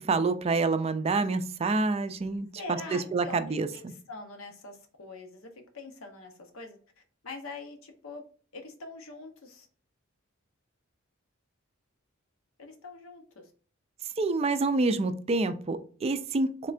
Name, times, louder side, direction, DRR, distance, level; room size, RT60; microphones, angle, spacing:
voice 1, 0.0-3.9 14.2-16.7, right 3 dB, 30° right, 0.3 m, -28 dB
voice 2, 2.5-3.4 3.7-6.8 7.2-8.2 8.5-9.7 12.6-13.5, left 3 dB, 85° left, 0.8 m, -43 dB
3.6 x 3.2 x 2.5 m
head